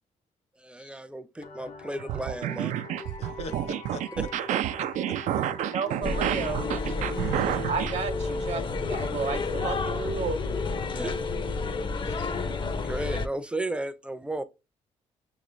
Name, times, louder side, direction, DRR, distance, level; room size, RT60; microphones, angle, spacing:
voice 1, 0.6-2.7 6.8-6.9 10.9-11.1 12.1-12.4 12.8-14.4, right 1 dB, 10° right, 0.5 m, -34 dB
sound 1, 1.4-10.3, left 3 dB, 90° left, 0.9 m, -43 dB
sound 2, 2.0-8.0, right 12 dB, 80° right, 0.4 m, -30 dB
voice 2, 3.2-4.0 4.8-5.2 6.8-7.6 12.0-12.4, left 2 dB, 60° left, 0.9 m, -43 dB
voice 3, 5.6-6.7 7.7-10.6, right 6 dB, 60° right, 0.9 m, -32 dB
sound 3, 6.0-13.3, left 3 dB, 40° left, 0.6 m, -30 dB
6.3 x 3.1 x 2.6 m
cardioid pair, 90°, 13 cm